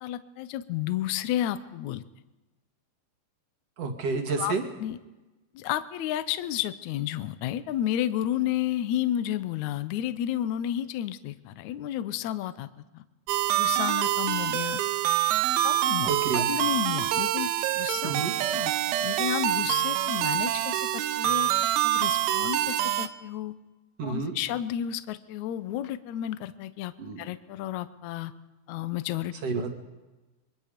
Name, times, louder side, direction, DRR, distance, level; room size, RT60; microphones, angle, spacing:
voice 1, 0.0-2.0 4.4-4.5 4.8-5.0 5.5-12.7 12.9-13.0 13.5-14.8 15.6-18.1 18.5-21.5 21.8-23.5 24.0-28.3 28.7-29.3, left 12 dB, 75° left, 13 dB, 1.7 m, -31 dB
voice 2, 3.8-4.6 16.1-16.5 18.0-18.3 24.0-24.3 27.0-27.2 29.4-29.7, right 4 dB, 45° right, 4 dB, 2.8 m, -30 dB
sound 1, 13.3-23.1, right 13 dB, 85° right, 2.8 m, -26 dB
27.0 x 23.5 x 5.2 m, 1.1 s
omnidirectional pair, 4.4 m